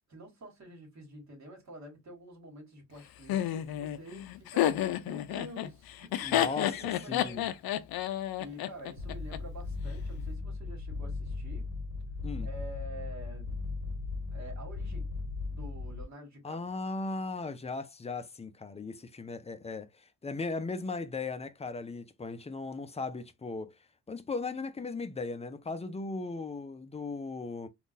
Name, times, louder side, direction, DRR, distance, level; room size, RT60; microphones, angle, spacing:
voice 1, 0.1-6.3 6.6-7.4 8.4-11.7 12.4-13.6 14.3-15.1 15.5-16.6, right 1 dB, 50° right, 1.7 m, -48 dB
Laughter, 3.3-9.4, left 12 dB, 90° left, 0.5 m, -30 dB
voice 2, 6.2-7.5 12.2-12.5 16.4-23.7 24.1-27.7, left 3 dB, 20° left, 0.4 m, -37 dB
sound 1, 9.0-16.0, left 3 dB, 75° right, 1.2 m, -37 dB
3.6 x 2.4 x 2.6 m
cardioid pair, 100°, 35 cm